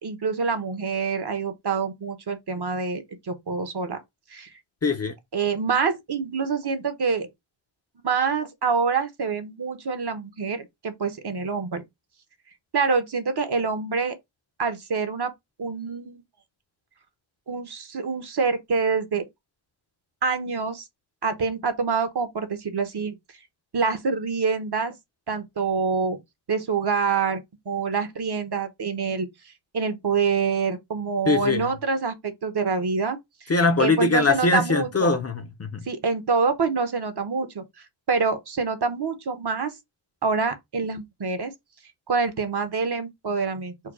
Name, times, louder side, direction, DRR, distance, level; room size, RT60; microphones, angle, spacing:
voice 1, 0.0-4.0 4.3-4.5 5.3-7.3 8.0-11.8 12.7-14.1 14.6-15.3 15.6-16.2 17.5-19.3 20.2-20.8 21.2-23.1 23.7-24.9 25.3-26.2 26.5-27.4 27.7-29.3 29.7-33.2 33.8-35.2 35.9-37.6 38.1-39.7 40.2-41.5 42.1-43.7, right 5 dB, 50° right, 1.1 m, -26 dB
voice 2, 4.8-5.2 31.3-31.7 33.5-35.8, left 3 dB, 30° left, 0.6 m, -22 dB
4.5 x 2.2 x 4.7 m
wide cardioid pair, 115°, 49 cm